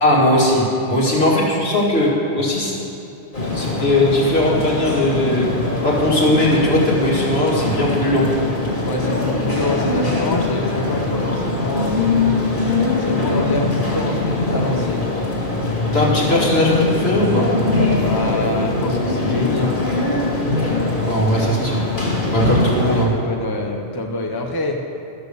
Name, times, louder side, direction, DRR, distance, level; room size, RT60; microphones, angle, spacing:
voice 1, 0.0-2.7 3.5-5.5 5.8-8.3 15.9-17.5 20.6-20.7 21.0-21.8 22.3-23.1, left 1 dB, 70° left, -4 dB, 2.3 m, -18 dB
voice 2, 1.0-1.3 8.8-12.0 13.0-15.3 18.0-19.8 21.4-21.9 22.8-24.8, left 2 dB, 25° left, 1 dB, 0.8 m, -26 dB
sound 1, 3.3-23.1, left 2 dB, 50° left, 2.4 m, -21 dB
12.5 x 6.6 x 6.8 m, 2.7 s
omnidirectional pair, 1.1 m